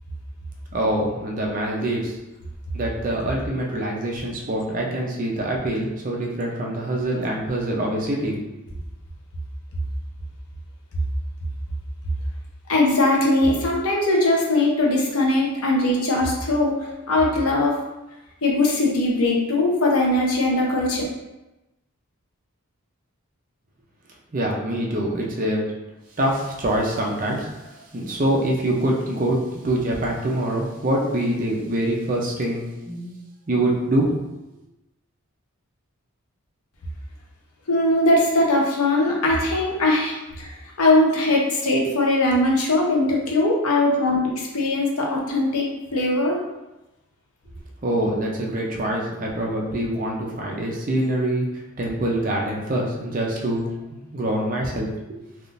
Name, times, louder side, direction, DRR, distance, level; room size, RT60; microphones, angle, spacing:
voice 1, 0.7-2.1 2.7-8.4 24.3-25.6 26.2-33.2 33.5-34.1 47.8-55.2, right 1 dB, 40° right, -2 dB, 0.5 m, -25 dB
voice 2, 12.7-17.8 18.4-21.0 37.7-46.4, left 2 dB, 85° left, -1 dB, 0.7 m, -20 dB
3.5 x 2.4 x 2.5 m, 0.99 s
head